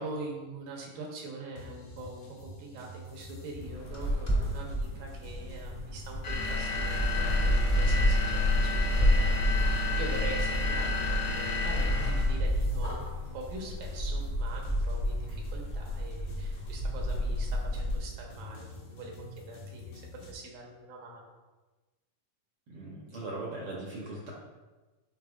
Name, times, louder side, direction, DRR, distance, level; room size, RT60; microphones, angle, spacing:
voice 1, 0.0-21.2, right 2 dB, 85° right, 0 dB, 2.8 m, -43 dB
sound 1, 1.6-20.3, left 1 dB, 70° left, 2.4 m, -46 dB
sound 2, 3.6-18.0, equal, 15° left, 0.6 m, -29 dB
sound 3, 6.2-12.4, left 4 dB, 85° left, 1.1 m, -33 dB
voice 2, 22.7-24.3, right 2 dB, 65° right, -4 dB, 1.4 m, -39 dB
9.4 x 4.2 x 2.5 m, 1.2 s
omnidirectional pair, 3.9 m